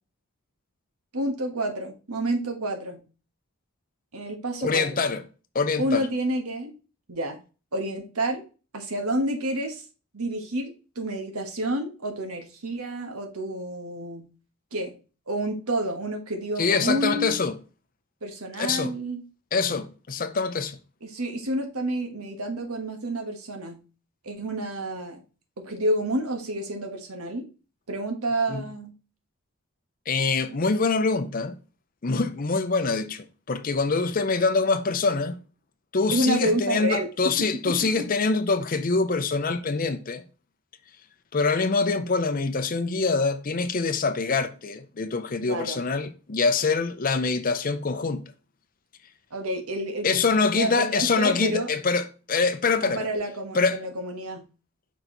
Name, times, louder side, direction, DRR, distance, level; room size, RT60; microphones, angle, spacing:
voice 1, 1.1-3.0 4.1-4.9 5.8-6.7 7.1-7.4 7.7-8.4 8.7-9.8 10.1-14.3 14.7-14.9 15.3-17.4 18.2-19.2 21.0-23.8 24.2-25.2 25.6-27.4 27.9-28.9 36.1-37.1 37.7-38.1 45.4-45.8 49.3-51.7 52.8-54.4, right 1 dB, 85° right, 1.5 m, -29 dB
voice 2, 4.6-5.2 5.5-6.1 16.6-17.5 18.6-19.0 19.5-20.8 28.5-28.7 30.1-31.6 32.0-35.4 35.9-40.2 41.3-48.3 50.0-53.1 53.5-53.8, left 4 dB, 40° left, 0.6 m, -25 dB
5.5 x 4.5 x 3.8 m
head